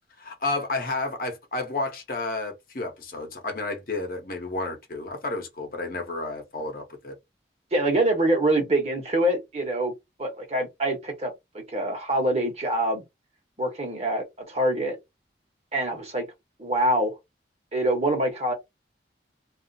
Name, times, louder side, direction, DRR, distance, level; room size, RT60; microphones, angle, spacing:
voice 1, 0.2-7.1, left 2 dB, 55° left, 0.9 m, -31 dB
voice 2, 7.7-9.9 10.2-13.0 13.6-15.0 15.7-16.3 16.6-17.1 17.7-18.5, right 1 dB, 35° right, 1.0 m, -25 dB
2.4 x 2.0 x 3.9 m
head